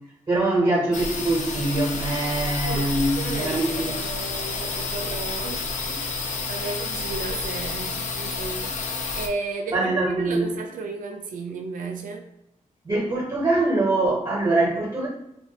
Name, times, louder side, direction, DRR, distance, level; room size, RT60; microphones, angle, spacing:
voice 1, 0.3-4.0 9.7-10.5 12.8-15.1, right 2 dB, 25° right, -5 dB, 0.7 m, -23 dB
sound 1, 0.9-9.3, left 3 dB, 65° left, 0.4 m, -30 dB
voice 2, 2.7-6.2 6.5-8.8 9.1-12.3, right 3 dB, 85° right, 3 dB, 0.4 m, -34 dB
2.2 x 2.1 x 2.7 m, 0.84 s
wide cardioid pair, 120°, 14 cm